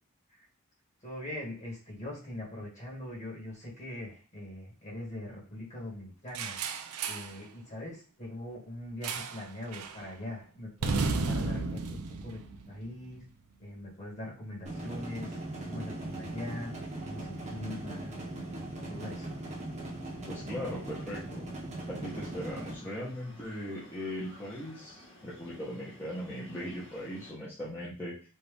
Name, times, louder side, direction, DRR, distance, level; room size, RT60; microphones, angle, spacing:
voice 1, 1.0-6.6 7.1-12.4 12.7-13.2 13.6-15.4 15.6-18.2 18.5-19.4, left 1 dB, 35° left, -3 dB, 2.1 m, -42 dB
sound 1, 6.3-7.4 9.0-9.5 9.7-10.0 10.8-13.1, right 4 dB, 75° right, 0.5 m, -33 dB
sound 2, 14.7-22.7, right 2 dB, 30° right, 1.1 m, -39 dB
voice 2, 20.2-21.4 21.9-28.1, equal, 10° left, -8 dB, 1.0 m, -39 dB
sound 3, 22.0-27.3, equal, 60° left, 2.0 m, -54 dB
4.4 x 2.7 x 3.4 m, 0.36 s
head